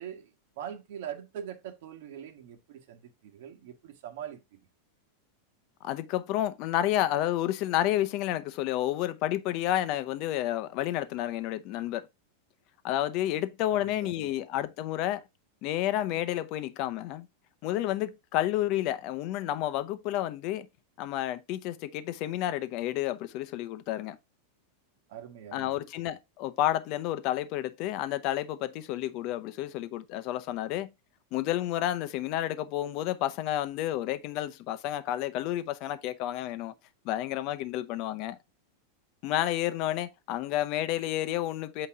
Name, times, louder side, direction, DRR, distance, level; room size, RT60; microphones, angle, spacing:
voice 1, 0.0-4.6 13.7-14.3 25.1-25.8, right 9 dB, 60° right, 1.5 m, -43 dB
voice 2, 5.8-12.1 12.8-15.2 15.6-17.3 17.6-20.7 21.0-24.2 25.5-30.9 31.3-36.7 37.0-38.4 39.2-41.9, left 13 dB, 45° left, 0.7 m, -30 dB
8.3 x 3.0 x 4.8 m
supercardioid pair, 155°, 0 cm